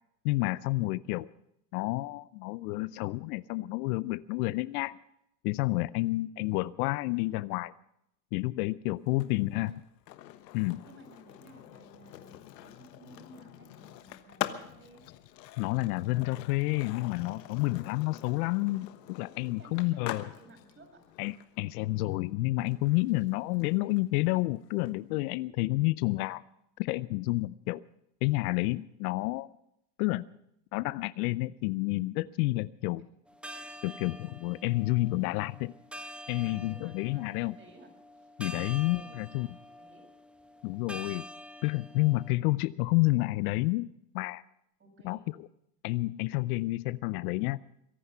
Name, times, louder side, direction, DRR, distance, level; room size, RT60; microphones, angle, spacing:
voice 1, 0.2-1.3 1.7-5.0 5.4-7.7 8.3-9.8 10.5-10.8 15.6-20.3 21.2-26.4 26.8-27.8 28.2-29.5 30.0-30.2 30.7-33.0 33.8-35.7 36.3-37.5 38.4-39.5 40.6-41.3 41.6-43.9 44.1-44.4 45.0-45.2 45.8-47.6, left 20 dB, 65° left, 18 dB, 0.6 m, -30 dB
Skateboard, 9.1-24.9, left 13 dB, 80° left, 1.3 m, -45 dB
voice 2, 9.1-9.8 10.8-15.0 19.6-21.0 33.5-34.0 36.4-38.3 38.8-40.0 44.8-45.3, right 2 dB, 25° right, 3 dB, 7.2 m, -56 dB
sound 1, 33.3-42.3, equal, ahead, 1.5 m, -47 dB
23.0 x 11.0 x 5.6 m, 0.78 s
hypercardioid pair, 100°, 48 cm